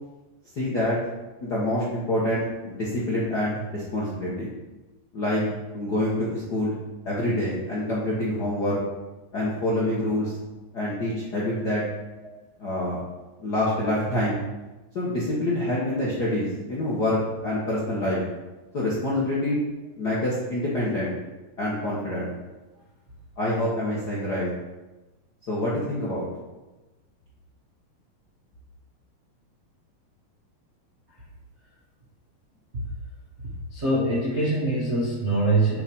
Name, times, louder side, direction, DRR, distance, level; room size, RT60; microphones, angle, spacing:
voice 1, 0.5-1.0 1.4-4.5 5.1-5.4 5.7-6.7 7.0-8.8 9.3-10.3 10.7-11.8 12.6-13.0 13.4-14.4 14.9-18.2 18.7-19.6 20.0-21.1 21.6-22.3 23.4-24.5 25.5-26.3, left 1 dB, 55° left, -7 dB, 1.1 m, -26 dB
voice 2, 33.7-35.8, right 2 dB, 45° right, -6 dB, 0.8 m, -24 dB
7.7 x 5.2 x 5.6 m, 1.1 s
omnidirectional pair, 4.1 m